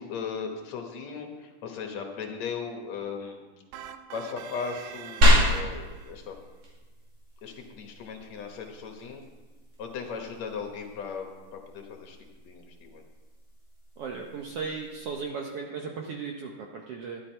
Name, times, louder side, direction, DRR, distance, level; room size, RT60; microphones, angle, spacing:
voice 1, 0.0-3.4 4.1-6.4 7.4-9.2 9.8-13.1, left 6 dB, 65° left, 3 dB, 2.2 m, -37 dB
sound 1, 3.7-6.1, right 9 dB, 90° right, 2.2 m, -44 dB
sound 2, 5.2-15.2, left 1 dB, 55° right, 3.3 m, -30 dB
voice 2, 14.0-17.2, right 5 dB, 70° right, 1 dB, 1.4 m, -36 dB
11.5 x 11.0 x 4.4 m, 1.3 s
omnidirectional pair, 3.6 m